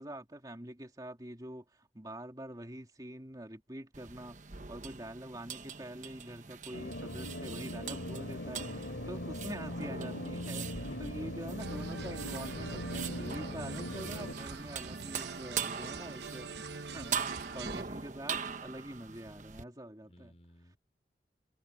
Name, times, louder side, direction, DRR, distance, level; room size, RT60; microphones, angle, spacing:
voice 1, 0.0-20.4, right 1 dB, 20° right, 2.7 m, -45 dB
sound 1, 3.9-19.6, right 6 dB, 45° right, 1.1 m, -42 dB
sound 2, 6.7-14.3, left 1 dB, 85° left, 2.9 m, -40 dB
voice 2, 10.9-11.3 14.1-14.7 20.0-20.8, equal, 35° left, 4.0 m, -54 dB
sound 3, 11.6-17.8, right 4 dB, 75° right, 1.0 m, -44 dB
head